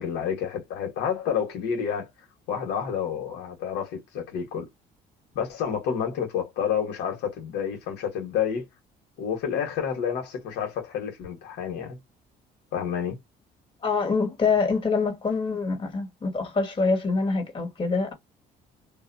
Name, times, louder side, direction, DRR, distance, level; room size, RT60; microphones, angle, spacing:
voice 1, 0.0-2.1 2.5-4.7 5.3-8.6 9.2-12.0 12.7-13.2, left 7 dB, 85° left, 1.4 m, -29 dB
voice 2, 13.8-18.1, left 4 dB, 30° left, 1.9 m, -25 dB
2.6 x 2.6 x 2.6 m
cardioid pair, 110°, 17 cm